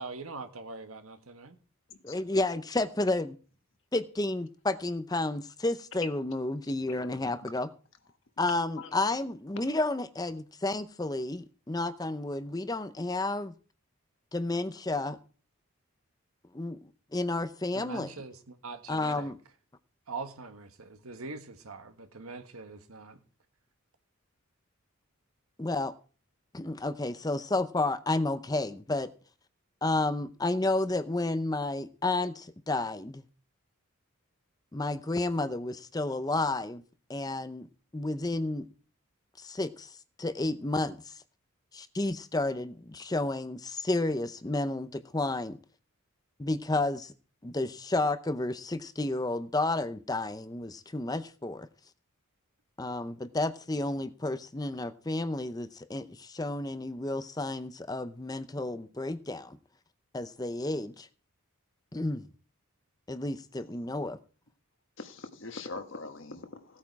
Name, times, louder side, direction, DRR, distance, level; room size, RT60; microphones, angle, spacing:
voice 1, 0.0-1.6 17.7-19.3 20.1-23.2, right 3 dB, 80° right, 1.6 m, -42 dB
voice 2, 2.0-3.4 3.9-7.7 8.4-13.5 14.3-15.2 16.5-16.8 17.1-18.1 18.9-19.4 25.6-25.9 26.5-29.1 29.8-33.2 34.7-36.8 37.1-37.7 37.9-38.7 39.4-41.2 41.7-45.6 46.4-47.1 47.4-51.7 52.8-59.6 60.1-61.1 61.9-62.2 63.1-64.2, left 2 dB, 15° left, 0.6 m, -31 dB
voice 3, 6.2-7.5 8.8-8.9 63.7-63.8 65.0-66.8, left 3 dB, 60° left, 1.4 m, -44 dB
16.5 x 8.6 x 4.7 m
head